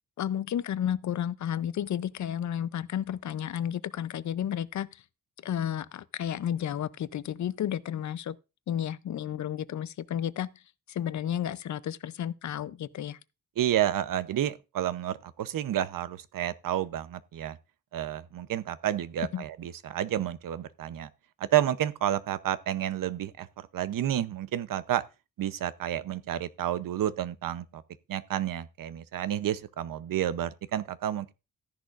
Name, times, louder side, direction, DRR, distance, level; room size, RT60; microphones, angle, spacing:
voice 1, 0.2-4.9 5.4-8.4 8.7-10.5 10.9-13.2 19.3-19.4, left 10 dB, 60° left, 0.5 m, -32 dB
voice 2, 13.6-17.6 17.9-21.1 21.4-25.0 25.4-27.8 28.1-31.3, right 11 dB, 85° right, 0.7 m, -30 dB
13.5 x 10.5 x 2.4 m
wide cardioid pair, 175°, 32 cm